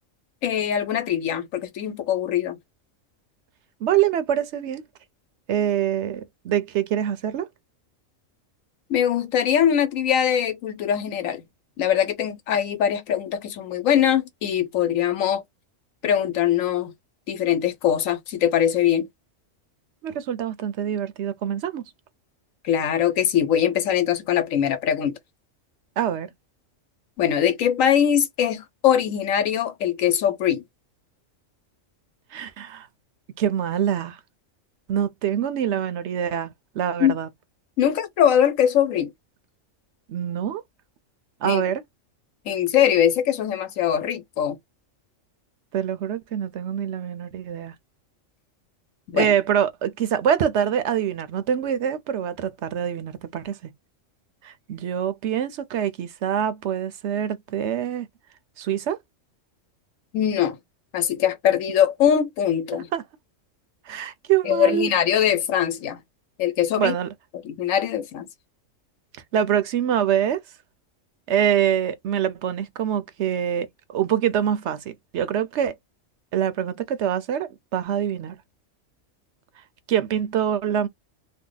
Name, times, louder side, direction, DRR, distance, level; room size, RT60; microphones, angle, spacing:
voice 1, 0.4-2.6 8.9-11.4 11.8-15.4 16.0-16.9 17.3-19.1 22.6-25.1 27.2-30.6 37.0-37.1 37.8-39.1 41.4-41.6 42.5-44.6 49.1-49.3 60.1-60.6 60.9-62.9 64.4-66.0 66.4-66.9 67.4-68.3, left 9 dB, 85° left, 1.1 m, -22 dB
voice 2, 3.8-4.8 5.5-7.5 20.0-21.8 26.0-26.3 32.3-32.9 33.4-34.2 34.9-37.3 40.1-40.6 41.4-41.8 45.7-47.7 49.1-53.6 54.4-58.1 58.6-59.0 62.7-63.0 63.9-64.9 66.8-67.1 69.3-70.4 71.3-75.7 76.3-78.4 79.9-80.9, right 9 dB, 70° right, 0.8 m, -25 dB
2.8 x 2.1 x 3.8 m
omnidirectional pair, 1.3 m